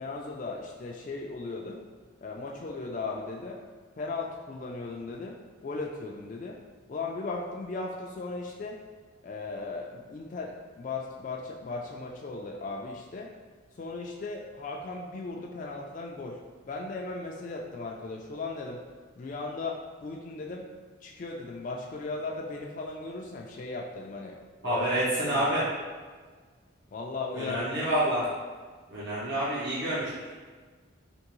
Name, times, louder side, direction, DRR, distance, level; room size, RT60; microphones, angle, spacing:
voice 1, 0.0-1.8 2.2-3.6 4.0-6.6 6.9-8.8 9.2-13.3 13.8-16.4 16.6-18.8 19.2-20.7 21.0-24.9 25.2-25.5 26.9-27.6, left 3 dB, 40° left, -1 dB, 0.3 m, -37 dB
voice 2, 24.6-25.6 27.3-28.2 28.9-30.4, right 1 dB, 60° right, -9 dB, 0.8 m, -28 dB
3.5 x 2.9 x 3.0 m, 1.5 s
head